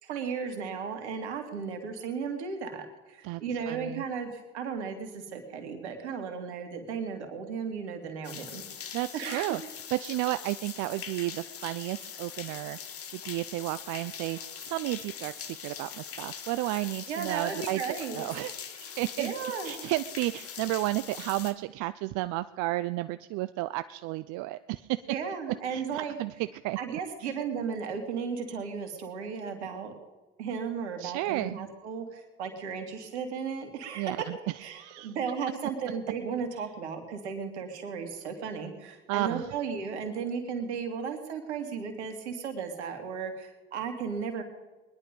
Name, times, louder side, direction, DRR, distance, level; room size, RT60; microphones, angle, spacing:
voice 1, 0.0-9.5 17.1-18.2 19.2-19.7 25.1-26.2 26.8-29.9 30.4-34.1 34.6-44.4, right 6 dB, 85° right, 5 dB, 2.7 m, -35 dB
voice 2, 3.2-4.0 8.9-9.6 9.9-25.0 25.7-26.8 27.2-27.3 31.0-31.6 34.0-35.1 39.1-39.5, right 18 dB, 65° right, 13 dB, 0.6 m, -33 dB
sound 1, 8.2-21.5, left 8 dB, 45° left, 1.8 m, -42 dB
21.0 x 11.0 x 5.3 m, 1.2 s
hypercardioid pair, 70°, 33 cm